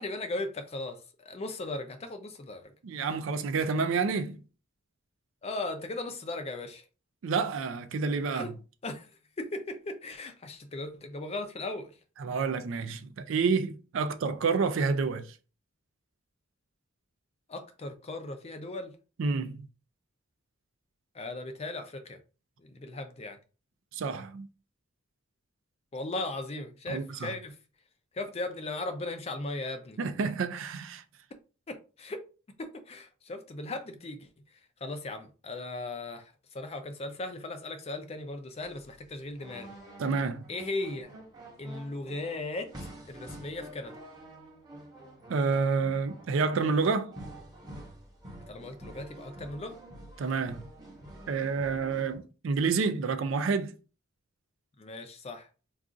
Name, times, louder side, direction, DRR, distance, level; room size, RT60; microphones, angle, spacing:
voice 1, 0.0-2.7 5.4-6.8 8.3-8.5 8.8-9.1 9.4-12.0 17.5-19.0 21.1-22.2 22.6-23.4 25.9-27.6 28.1-30.0 31.7-32.2 32.6-34.3 34.8-39.7 40.5-41.1 41.6-44.0 48.5-49.8 54.8-55.5, left 2 dB, 30° left, 0.4 m, -37 dB
voice 2, 2.8-4.4 7.2-8.5 12.2-15.3 19.2-19.6 23.9-24.5 26.9-27.3 30.0-31.0 40.0-40.4 45.3-47.1 50.2-50.7 51.3-53.7, right 4 dB, 60° right, 0.4 m, -29 dB
sound 1, 38.6-52.2, right 1 dB, 20° right, 0.9 m, -48 dB
2.4 x 2.4 x 3.8 m
head